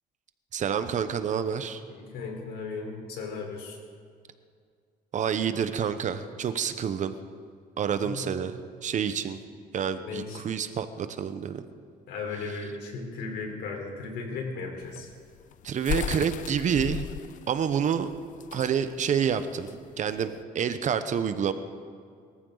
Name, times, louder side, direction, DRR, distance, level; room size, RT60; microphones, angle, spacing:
voice 1, 0.5-1.8 5.1-7.1 7.8-9.4 9.7-11.6 15.6-17.1 17.5-18.1 18.5-19.7 20.0-21.5, right 7 dB, 45° right, 10 dB, 1.0 m, -28 dB
voice 2, 1.9-3.8 8.0-8.4 10.0-10.4 12.1-15.1, left 4 dB, 80° left, 1 dB, 4.1 m, -36 dB
sound 1, 14.8-20.4, left 11 dB, 50° left, 0.4 m, -36 dB
23.0 x 14.0 x 4.0 m, 2.2 s
cardioid pair, 110°, 17 cm